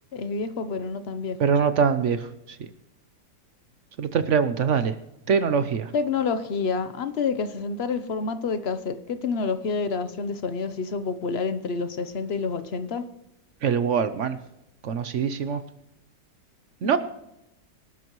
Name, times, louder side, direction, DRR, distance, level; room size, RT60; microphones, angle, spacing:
voice 1, 0.1-1.4 5.9-13.0 16.8-17.0, left 4 dB, 45° left, 0.9 m, -28 dB
voice 2, 1.4-2.2 4.0-4.9 5.3-5.9 13.6-14.4 14.8-15.6 16.8-17.0, right 6 dB, 60° right, 0.8 m, -23 dB
25.0 x 12.0 x 3.1 m
omnidirectional pair, 1.8 m